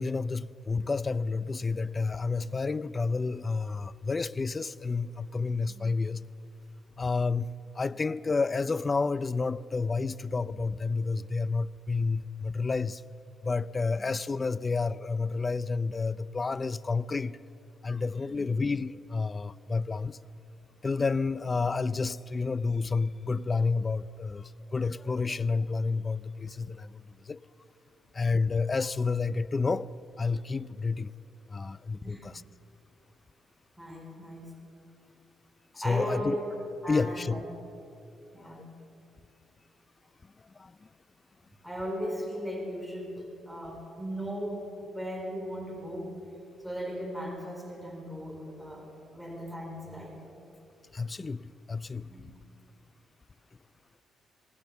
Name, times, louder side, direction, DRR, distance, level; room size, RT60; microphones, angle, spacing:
voice 1, 0.0-6.2 7.0-13.0 13.4-17.4 17.8-20.2 20.8-27.4 28.1-29.9 30.2-31.1 31.5-32.4 35.8-36.4 36.9-37.4 38.6-38.9 40.6-40.8 50.9-52.1, left 4 dB, 30° left, 0.6 m, -30 dB
voice 2, 18.2-18.6 32.0-32.3 33.8-34.5 35.7-37.4 38.3-38.7 41.6-46.2 46.6-50.2 52.1-52.2, equal, ahead, 4.6 m, -37 dB
26.5 x 19.0 x 7.0 m
cardioid pair, 90°, 0 cm